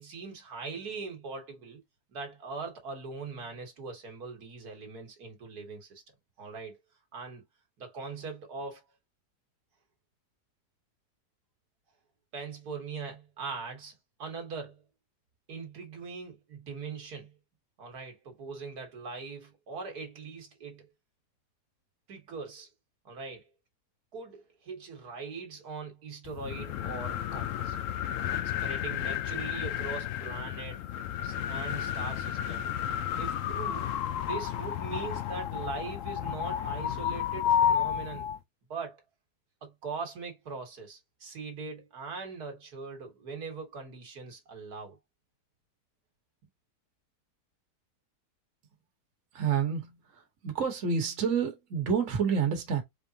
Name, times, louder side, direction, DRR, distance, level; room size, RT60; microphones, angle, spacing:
voice 1, 0.0-1.8 2.1-6.0 6.4-6.8 7.1-7.5 7.8-8.9 12.3-14.8 15.5-17.4 17.8-20.9 22.1-22.7 23.1-23.5 24.1-27.8 28.3-30.9 31.2-32.8 33.2-33.9 34.2-38.3 38.7-39.0 39.6-45.0, right 4 dB, 65° right, 1.8 m, -41 dB
sound 1, 26.3-38.4, left 10 dB, 70° left, 0.8 m, -32 dB
voice 2, 49.3-52.8, right 6 dB, 50° right, 1.5 m, -29 dB
4.6 x 3.4 x 2.7 m
omnidirectional pair, 1.8 m